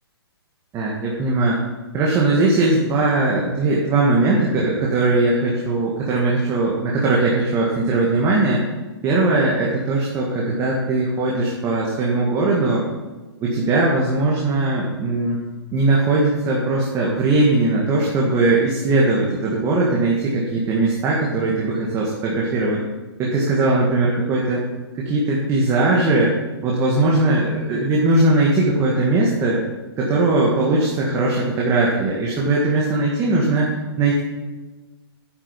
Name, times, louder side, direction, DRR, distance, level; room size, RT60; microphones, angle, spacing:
voice 1, 0.7-1.6 1.9-8.6 9.0-12.9 13.4-15.4 15.7-22.8 23.2-24.6 24.9-26.3 26.6-29.6 30.0-34.2, right 2 dB, 20° right, -4 dB, 1.8 m, -19 dB
9.9 x 8.2 x 5.3 m, 1.2 s
hypercardioid pair, 145°, 14 cm